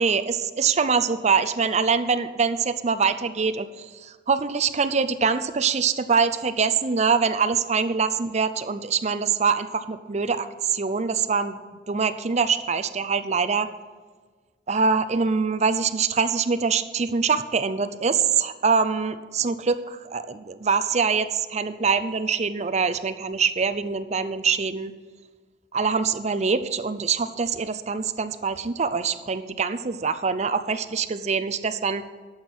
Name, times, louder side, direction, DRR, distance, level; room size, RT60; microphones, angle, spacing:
voice 1, 0.0-13.7 14.7-24.9 25.7-32.0, right 5 dB, 40° right, 11 dB, 0.6 m, -24 dB
12.0 x 8.0 x 6.2 m, 1.4 s
head